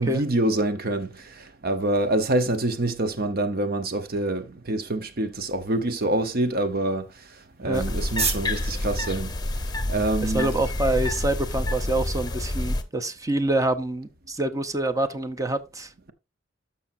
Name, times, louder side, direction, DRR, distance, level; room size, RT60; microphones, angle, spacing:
voice 1, 0.0-7.2 7.6-10.5, right 2 dB, 50° right, 0.9 m, -26 dB
sound 1, 5.3-12.4, right 5 dB, 35° right, 1.3 m, -38 dB
sound 2, 7.7-12.8, left 1 dB, 20° left, 0.9 m, -28 dB
voice 2, 10.2-15.9, right 2 dB, 15° right, 0.7 m, -26 dB
13.0 x 5.7 x 2.6 m
head